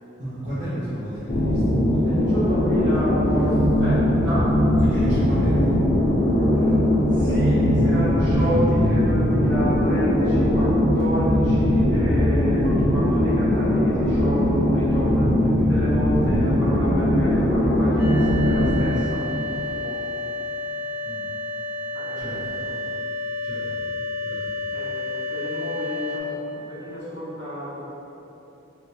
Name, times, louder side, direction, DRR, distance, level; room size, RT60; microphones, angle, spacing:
voice 1, 0.2-2.2 4.8-5.6 21.1-21.2 22.2-22.5 23.4-23.8 24.2-24.5, equal, 40° right, -14 dB, 0.7 m, -33 dB
sound 1, 1.3-18.8, left 1 dB, 75° left, 0.8 m, -20 dB
voice 2, 2.0-4.6 4.9-5.7 6.3-20.0 21.9-22.8 24.7-27.8, equal, 70° right, -12 dB, 1.4 m, -31 dB
sound 2, 18.0-26.2, left 2 dB, 50° left, 0.5 m, -30 dB
3.4 x 2.7 x 2.8 m, 3.0 s
head